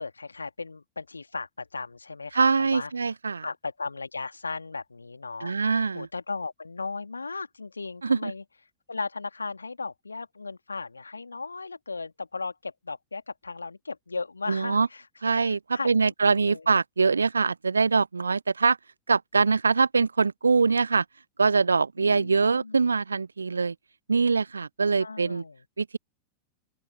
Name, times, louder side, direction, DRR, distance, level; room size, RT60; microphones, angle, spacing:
voice 1, 0.0-2.9 3.4-5.5 5.9-8.4 8.9-15.0 15.3-16.7 22.0-22.8 25.0-25.6, left 4 dB, 80° left, 2.1 m, -36 dB
voice 2, 2.3-3.4 5.4-6.1 8.0-8.3 14.5-14.9 15.2-18.8 19.1-21.0 21.4-23.7 24.1-25.4 25.8-26.0, right 4 dB, 75° right, 0.8 m, -23 dB
open air
figure-of-eight pair, 90°, 0 cm